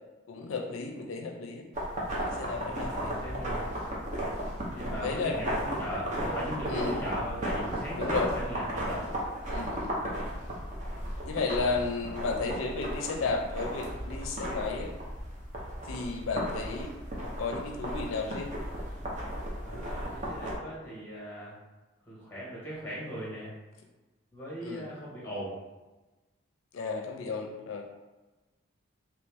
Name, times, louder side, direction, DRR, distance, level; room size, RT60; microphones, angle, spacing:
voice 1, 0.3-1.6 2.2-3.1 5.0-5.4 6.7-7.0 7.9-8.3 9.5-10.3 11.2-14.9 15.8-16.9 17.4-18.5 24.6-24.9 26.7-27.8, left 4 dB, 80° left, 2 dB, 0.4 m, -33 dB
sound 1, 1.7-20.6, equal, 35° right, 0.7 m, -35 dB
voice 2, 2.5-3.6 4.7-9.0 16.0-16.3 19.6-21.6 22.1-23.5 24.3-25.6, equal, 10° left, -6 dB, 1.3 m, -39 dB
3.1 x 2.9 x 3.4 m, 1.2 s
head